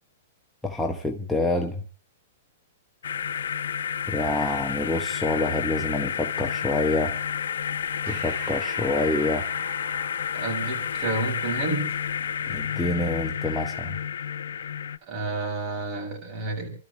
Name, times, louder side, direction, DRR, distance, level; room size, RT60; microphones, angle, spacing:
voice 1, 0.6-1.8 4.1-7.2 8.1-9.5 12.5-14.0, left 2 dB, 5° left, 0.9 m, -27 dB
sound 1, 3.0-15.0, left 8 dB, 80° left, 0.8 m, -30 dB
Breathing, 8.1-12.9, right 3 dB, 55° right, 3.5 m, -44 dB
voice 2, 10.3-11.9 15.1-16.7, right 2 dB, 35° right, 7.5 m, -30 dB
30.0 x 13.0 x 3.3 m
hypercardioid pair, 155°, 0 cm